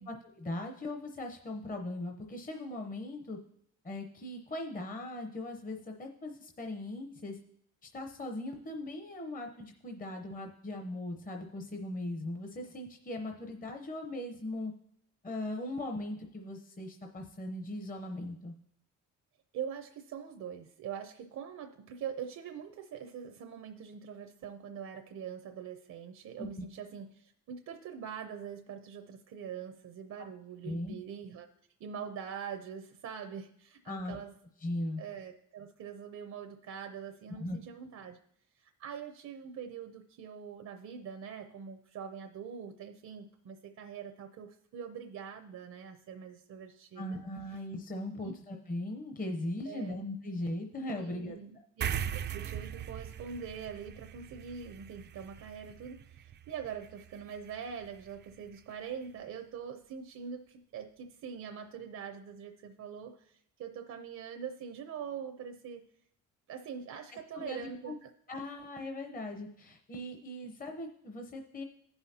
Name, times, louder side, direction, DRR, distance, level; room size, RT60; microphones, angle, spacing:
voice 1, 0.1-3.4 3.8-7.4 7.8-14.7 15.2-18.5 26.4-26.6 30.6-30.9 33.9-34.2 34.6-35.0 37.4-37.6 47.0-51.4 67.3-67.9 68.3-71.6, left 1 dB, 30° left, 3 dB, 0.8 m, -39 dB
voice 2, 19.5-31.5 31.8-34.3 35.0-38.2 38.6-47.2 48.1-48.4 49.7-50.0 50.9-65.8 66.5-68.1, right 7 dB, 65° right, 6 dB, 0.7 m, -43 dB
sound 1, 51.8-58.6, right 9 dB, 35° right, 0.4 m, -41 dB
15.5 x 5.7 x 2.8 m, 0.70 s
cardioid pair, 90°, 30 cm